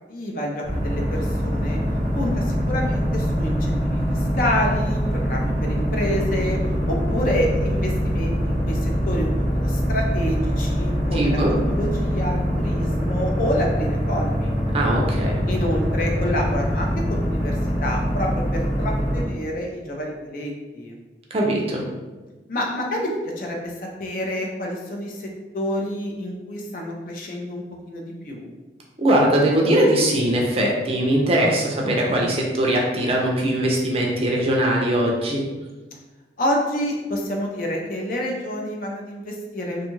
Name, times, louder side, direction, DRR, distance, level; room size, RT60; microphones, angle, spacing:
voice 1, 0.1-1.8 2.1-6.6 6.9-11.4 11.7-14.5 15.4-20.9 22.5-23.1 23.4-23.7 24.0-25.3 25.5-28.5 36.4-39.9, equal, 50° left, 0 dB, 0.4 m, -28 dB
sound 1, 0.6-19.2, equal, 80° left, 1.4 m, -23 dB
voice 2, 11.1-11.5 14.7-15.4 21.3-21.8 29.0-35.4, right 1 dB, 35° right, -1 dB, 0.4 m, -20 dB
2.6 x 2.3 x 3.0 m, 1.2 s
head